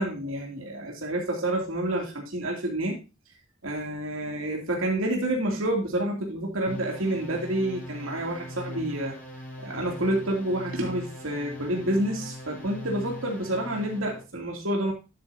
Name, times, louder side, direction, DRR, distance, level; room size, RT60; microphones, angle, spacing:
voice 1, 0.0-3.0 3.6-9.2 9.6-14.9, right 1 dB, 80° right, -1 dB, 2.6 m, -28 dB
sound 1, 6.7-14.2, left 1 dB, 40° left, 4.5 m, -40 dB
10.5 x 9.2 x 2.7 m, 0.28 s
head